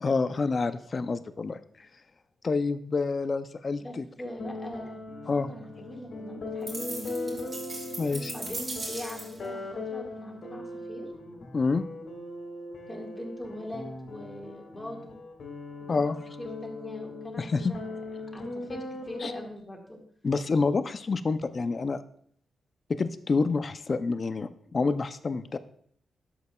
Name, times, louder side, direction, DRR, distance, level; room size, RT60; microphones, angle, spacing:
voice 1, 0.0-1.9 2.4-4.1 5.3-5.5 8.0-8.3 11.5-11.9 15.9-16.2 17.4-17.7 19.2-19.3 20.2-22.0 22.9-25.6, left 4 dB, 35° left, 12 dB, 0.4 m, -28 dB
voice 2, 3.8-5.0 5.4-7.4 8.3-9.6 9.9-11.1 12.9-15.2 15.8-18.0 18.3-20.0, left 1 dB, 10° left, 0 dB, 1.7 m, -42 dB
sound 1, 4.4-19.5, left 2 dB, 65° left, 1.9 m, -39 dB
sound 2, 6.7-9.5, right 2 dB, 30° right, 3.5 m, -38 dB
12.0 x 7.5 x 2.3 m, 0.62 s
wide cardioid pair, 145°, 0 cm